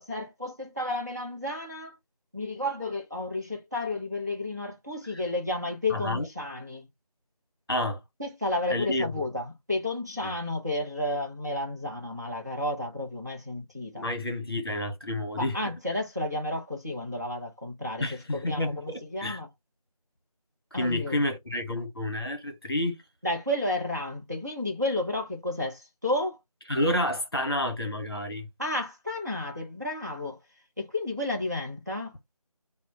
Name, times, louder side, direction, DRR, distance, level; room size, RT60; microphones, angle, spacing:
voice 1, 0.0-2.0 2.3-6.9 8.2-14.1 15.4-18.1 18.3-19.5 20.7-21.2 23.2-26.4 28.6-30.4 30.8-32.1, left 1 dB, 30° right, 0.6 m, -32 dB
voice 2, 5.9-6.3 7.7-8.0 8.7-9.1 10.2-10.3 14.0-15.6 18.0-19.4 20.7-23.0 26.7-28.5, left 1 dB, 40° left, 1.0 m, -29 dB
3.0 x 2.1 x 4.1 m
figure-of-eight pair, 170°, 19 cm